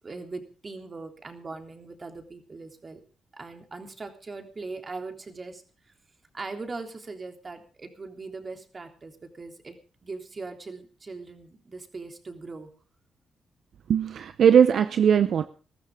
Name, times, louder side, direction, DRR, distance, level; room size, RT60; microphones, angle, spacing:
voice 1, 0.0-3.0 3.3-5.6 6.3-12.7, right 3 dB, 35° right, 3.4 m, -40 dB
voice 2, 13.9-15.5, right 8 dB, 70° right, 0.7 m, -19 dB
21.0 x 14.0 x 3.7 m
cardioid pair, 70°, 0 cm